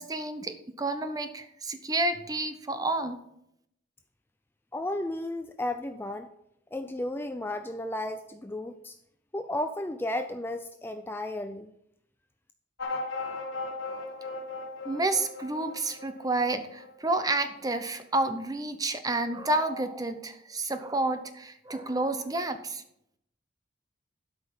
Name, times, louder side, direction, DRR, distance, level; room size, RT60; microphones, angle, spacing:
voice 1, 0.0-3.2 14.8-22.8, right 2 dB, 20° right, 9 dB, 0.7 m, -30 dB
voice 2, 4.7-6.3 6.7-9.0 9.3-11.7, left 1 dB, 10° left, 7 dB, 0.4 m, -33 dB
sound 1, 12.8-17.7, left 3 dB, 80° left, 1.3 m, -38 dB
12.0 x 5.2 x 5.4 m, 0.76 s
head